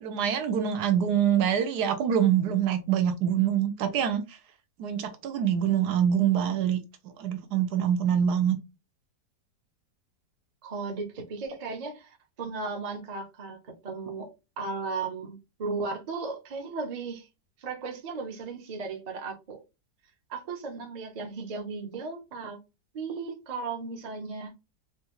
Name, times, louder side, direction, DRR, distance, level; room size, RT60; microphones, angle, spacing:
voice 1, 0.0-4.2 4.8-6.8 7.2-8.6, right 9 dB, 75° right, 1.2 m, -25 dB
voice 2, 10.6-17.3 17.6-19.6 20.3-22.6 22.9-24.5, right 4 dB, 35° right, 0.6 m, -36 dB
4.2 x 2.3 x 3.0 m
omnidirectional pair, 1.8 m